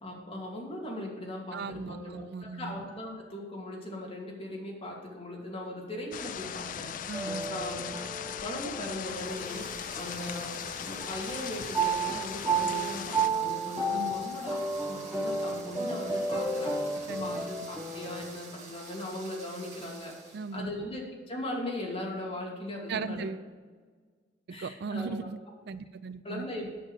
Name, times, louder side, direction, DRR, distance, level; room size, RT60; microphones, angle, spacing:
voice 1, 0.0-6.9 7.5-8.1 8.4-10.5 10.8-23.3 24.5-25.2 26.2-26.7, left 1 dB, 30° left, -2 dB, 2.4 m, -39 dB
voice 2, 1.5-2.8 7.1-7.6 13.9-14.2 17.1-17.3 17.6-17.7 20.3-20.7 22.9-23.4 24.5-25.4 25.7-26.5, right 5 dB, 60° right, 14 dB, 0.4 m, -37 dB
sound 1, 6.1-13.3, left 9 dB, 45° left, 0.3 m, -39 dB
sound 2, 7.1-10.6 11.0-18.3, right 3 dB, 15° right, 1.1 m, -33 dB
sound 3, 8.8-20.6, right 3 dB, 40° right, 2.1 m, -49 dB
8.9 x 6.4 x 6.5 m, 1.5 s
head